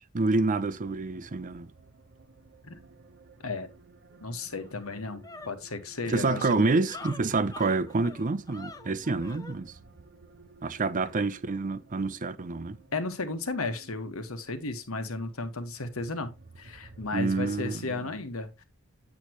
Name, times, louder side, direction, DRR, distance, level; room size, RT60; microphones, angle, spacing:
voice 1, 0.1-1.7 6.1-9.7 10.6-12.8 17.1-17.8, right 3 dB, 40° right, 0.6 m, -27 dB
sound 1, 0.8-17.8, right 3 dB, 55° right, 1.0 m, -56 dB
sound 2, 4.1-4.2 4.6-9.6, left 3 dB, 15° left, 0.6 m, -46 dB
voice 2, 4.2-6.7 12.9-18.6, left 3 dB, 85° left, 1.5 m, -34 dB
8.5 x 8.4 x 3.0 m
head